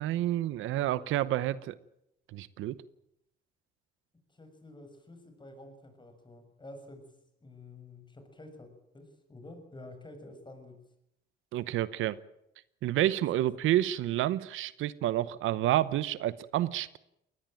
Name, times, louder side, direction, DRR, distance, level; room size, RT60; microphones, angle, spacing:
voice 1, 0.0-1.8 2.3-2.8 11.5-12.2 12.8-17.0, right 13 dB, 85° right, 17 dB, 0.9 m, -29 dB
voice 2, 4.3-7.1 7.4-10.8 13.4-13.5, left 2 dB, 25° left, 7 dB, 6.7 m, -50 dB
22.0 x 18.5 x 9.0 m, 0.80 s
cardioid pair, 90°, 20 cm